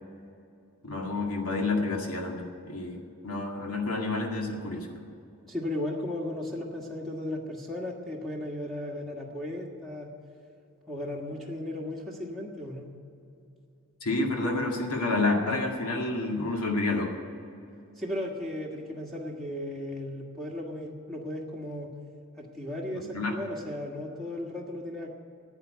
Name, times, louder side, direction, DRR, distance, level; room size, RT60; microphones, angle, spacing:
voice 1, 0.8-5.0 14.0-17.1 23.1-23.3, left 2 dB, 80° left, 1 dB, 2.1 m, -29 dB
voice 2, 5.5-10.1 10.9-12.9 18.0-21.9 22.4-25.1, left 1 dB, ahead, -3 dB, 1.5 m, -35 dB
11.0 x 9.0 x 9.4 m, 2.7 s
head